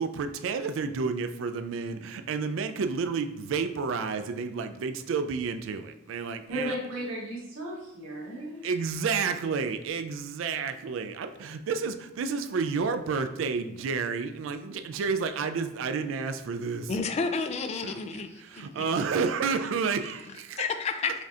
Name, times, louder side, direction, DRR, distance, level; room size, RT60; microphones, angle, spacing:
voice 1, 0.0-6.7 8.6-17.0 17.8-20.6, right 5 dB, 70° right, 9 dB, 0.3 m, -30 dB
voice 2, 6.5-8.6, right 1 dB, 85° right, -5 dB, 1.4 m, -35 dB
voice 3, 16.9-18.8 20.6-21.1, left 4 dB, 35° left, 8 dB, 0.3 m, -31 dB
5.1 x 2.7 x 2.4 m, 0.84 s
head